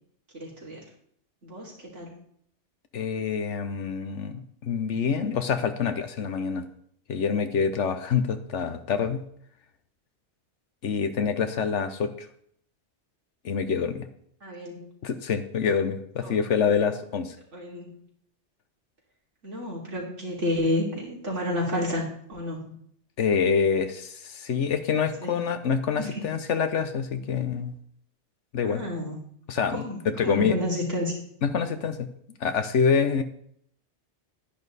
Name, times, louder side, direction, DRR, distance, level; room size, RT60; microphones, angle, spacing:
voice 1, 0.3-0.8 1.4-2.1 14.4-14.9 16.2-16.3 17.5-18.0 19.4-22.7 25.2-25.5 26.0-26.2 28.6-29.2 29.7-30.0 30.2-31.2, left 1 dB, 85° right, -3 dB, 3.7 m, -30 dB
voice 2, 2.9-6.7 7.1-9.2 10.8-12.3 13.4-14.1 15.0-17.3 23.2-27.8 28.5-28.8 29.5-30.5 31.4-32.1 32.4-33.2, left 6 dB, 90° left, 9 dB, 1.3 m, -26 dB
11.0 x 10.0 x 4.1 m, 0.66 s
omnidirectional pair, 1.2 m